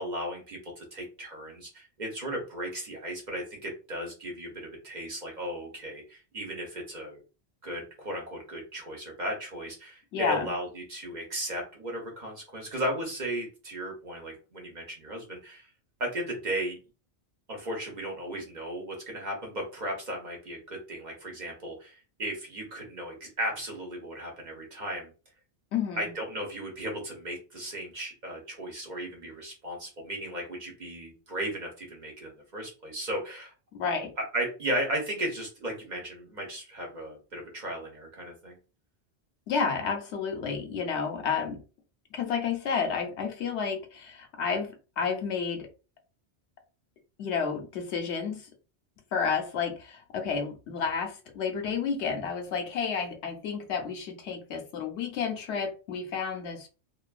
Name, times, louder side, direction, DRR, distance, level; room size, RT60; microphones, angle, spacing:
voice 1, 0.0-7.2 7.6-15.7 16.0-16.8 17.5-25.1 26.0-33.5 34.2-38.6, right 1 dB, 45° right, 0 dB, 0.9 m, -35 dB
voice 2, 10.1-10.5 25.7-26.1 33.7-34.1 39.5-41.6 42.1-45.7 47.2-48.5 49.1-56.7, left 6 dB, 90° left, 4 dB, 1.0 m, -31 dB
2.6 x 2.5 x 2.3 m, 0.33 s
omnidirectional pair, 1.1 m